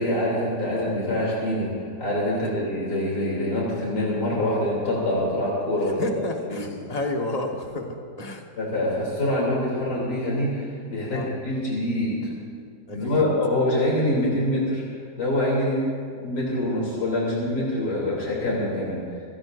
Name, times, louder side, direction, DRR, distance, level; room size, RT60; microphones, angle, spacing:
voice 1, 0.0-1.7 2.0-6.1 6.5-6.6 8.6-12.3 12.9-14.8 15.2-15.8 16.2-19.0, left 1 dB, 85° left, -5 dB, 3.7 m, -25 dB
voice 2, 2.3-2.7 6.0-8.4 11.1-11.3 12.9-13.3, left 2 dB, 25° left, 1 dB, 1.4 m, -31 dB
26.5 x 16.5 x 2.6 m, 2.2 s
omnidirectional pair, 1.7 m